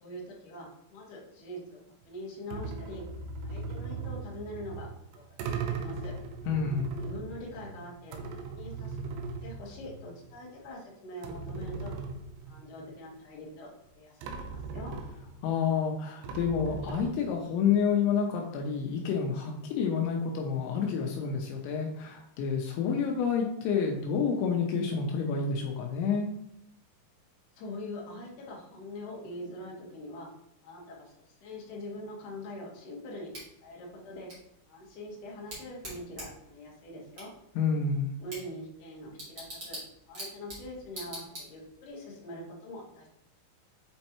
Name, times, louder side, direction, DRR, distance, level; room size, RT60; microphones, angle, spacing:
voice 1, 0.0-3.0 3.4-4.9 5.1-5.2 5.5-6.1 7.0-8.2 8.5-9.0 9.4-11.9 12.5-15.0 27.6-30.3 30.6-31.1 31.4-33.3 33.6-34.3 34.7-37.3 38.2-39.8 40.1-43.1, left 1 dB, 60° left, -4 dB, 2.5 m, -43 dB
sound 1, 2.5-10.3 10.7-10.8 11.2-12.9 13.9-14.0 14.2-15.6 16.2-17.5, right 4 dB, 80° right, 2.5 m, -39 dB
voice 2, 6.5-6.9 15.4-26.3 37.6-38.1, left 6 dB, 80° left, 1 dB, 2.9 m, -29 dB
Bicycle / Tick, 33.3-41.9, right 1 dB, 35° right, 2.1 m, -46 dB
7.8 x 4.3 x 2.9 m, 0.78 s
omnidirectional pair, 5.3 m